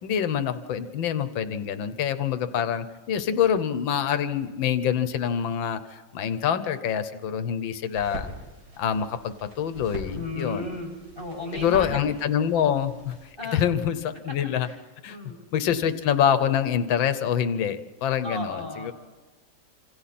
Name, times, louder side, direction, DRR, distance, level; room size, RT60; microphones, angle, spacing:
voice 1, 0.0-8.3 8.8-10.7 11.5-13.2 13.5-14.7 15.0-15.2 15.5-18.9, left 8 dB, 90° left, 11 dB, 1.7 m, -26 dB
sound 1, 7.9-13.3, right 1 dB, 90° right, 5.6 m, -42 dB
voice 2, 10.1-12.0 12.5-12.8 13.4-13.7 14.6-14.8 15.1-15.4 18.2-18.9, left 2 dB, 10° right, 0 dB, 6.6 m, -35 dB
26.5 x 26.5 x 4.3 m, 1.2 s
omnidirectional pair, 2.0 m